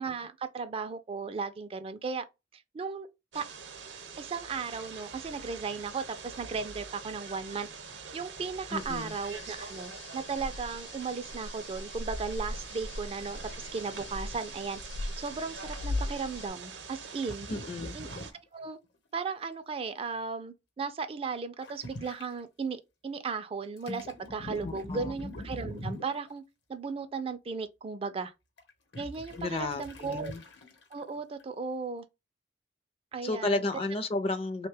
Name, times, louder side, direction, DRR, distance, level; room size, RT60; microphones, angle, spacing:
voice 1, 0.0-2.2 2.5-3.1 3.3-3.5 4.2-7.7 8.1-14.8 15.2-17.5 17.9-18.1 18.5-18.8 19.1-26.4 26.7-28.3 29.0-30.3 30.9-32.0 33.1-33.6, right 5 dB, 30° right, 0.3 m, -36 dB
sound 1, 3.3-18.3, right 5 dB, 80° right, 0.7 m, -45 dB
voice 2, 8.7-9.1 17.5-18.0 24.6-25.2 29.4-30.4 33.2-34.7, left 2 dB, 35° left, 0.4 m, -32 dB
sound 2, 8.8-16.5, left 2 dB, 85° left, 0.5 m, -40 dB
sound 3, 17.3-18.3 18.6-18.7 21.6-22.3 23.8-26.3 28.6-31.0 31.4-31.5, left 1 dB, 70° left, 0.9 m, -42 dB
3.1 x 2.2 x 3.2 m
head